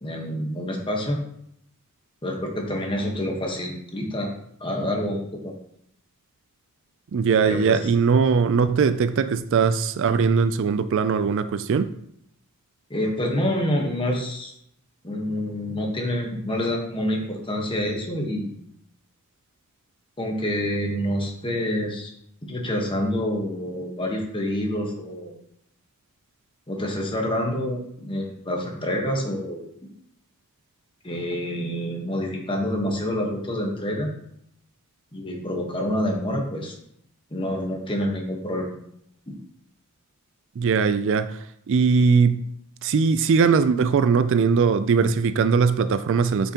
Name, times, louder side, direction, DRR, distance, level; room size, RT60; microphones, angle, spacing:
voice 1, 0.0-1.2 2.2-4.3 4.6-5.5 7.4-7.8 12.9-14.5 15.0-18.6 20.2-22.1 22.4-25.3 26.7-29.6 31.0-34.1 35.1-36.7 37.3-38.7 39.3-39.4, left 1 dB, 25° left, 1.2 m, -27 dB
voice 2, 7.1-11.9 40.6-41.4 41.7-42.5 42.8-46.5, right 5 dB, 60° right, 0.4 m, -20 dB
8.4 x 5.7 x 2.9 m
head